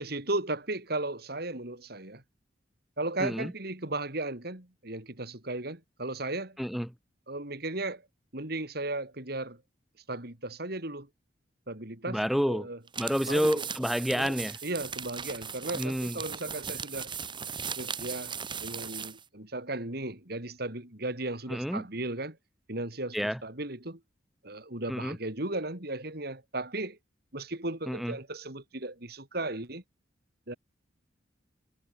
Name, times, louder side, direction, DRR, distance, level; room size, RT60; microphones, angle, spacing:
voice 1, 0.0-2.2 3.0-6.6 7.3-8.0 8.3-9.6 10.1-11.1 11.7-12.8 13.3-13.6 14.1-17.1 17.8-22.4 22.7-24.0 24.4-27.0 27.3-29.8 30.5-30.6, right 2 dB, 60° right, 4.2 m, -36 dB
voice 2, 3.2-3.5 6.6-6.9 12.1-12.7 13.0-14.6 15.7-16.2 21.5-21.9 23.1-23.4 24.9-25.2 27.9-28.1, equal, ahead, 0.9 m, -29 dB
sound 1, 12.9-19.2, right 7 dB, 25° right, 1.9 m, -38 dB
head